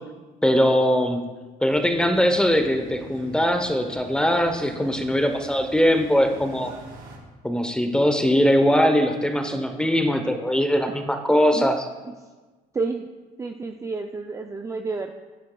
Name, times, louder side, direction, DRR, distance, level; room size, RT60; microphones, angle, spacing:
voice 1, 0.4-1.2 1.6-6.7 7.4-11.9, equal, 5° left, 6 dB, 0.8 m, -21 dB
sound 1, 1.7-7.2, right 2 dB, 55° right, 2.9 m, -45 dB
voice 2, 12.7-13.1 13.4-15.2, right 4 dB, 20° right, 5 dB, 0.4 m, -30 dB
9.7 x 9.4 x 2.3 m, 1.3 s
cardioid pair, 110°, 17 cm